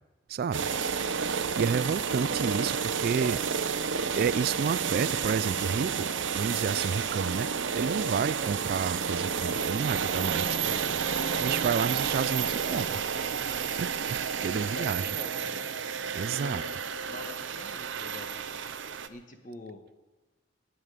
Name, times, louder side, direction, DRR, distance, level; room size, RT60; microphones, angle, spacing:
voice 1, 0.3-0.7 1.6-3.4 4.2-6.1 6.3-7.5 7.7-10.8 11.4-13.0 13.5-15.2 16.1-16.6, right 6 dB, 50° right, 18 dB, 0.3 m, -30 dB
sound 1, 0.5-19.1, right 6 dB, 70° right, 0.7 m, -30 dB
voice 2, 14.5-15.5 16.4-18.4 19.1-19.9, left 1 dB, 45° left, 5 dB, 1.5 m, -44 dB
20.0 x 9.2 x 5.0 m, 1.2 s
head